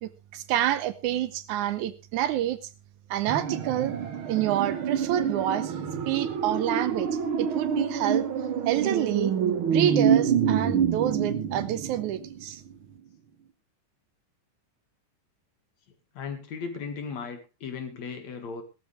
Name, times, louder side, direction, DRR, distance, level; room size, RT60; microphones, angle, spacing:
voice 1, 0.0-2.6 3.1-3.9 4.3-5.7 6.1-7.1 7.4-8.2 8.7-9.3 9.7-12.6, right 12 dB, 75° right, 14 dB, 2.1 m, -28 dB
sound 1, 3.3-12.4 12.7-12.8, right 7 dB, 50° right, 1.8 m, -27 dB
voice 2, 16.1-18.6, left 5 dB, 60° left, 7 dB, 3.1 m, -36 dB
17.5 x 12.5 x 3.4 m, 0.28 s
omnidirectional pair, 3.7 m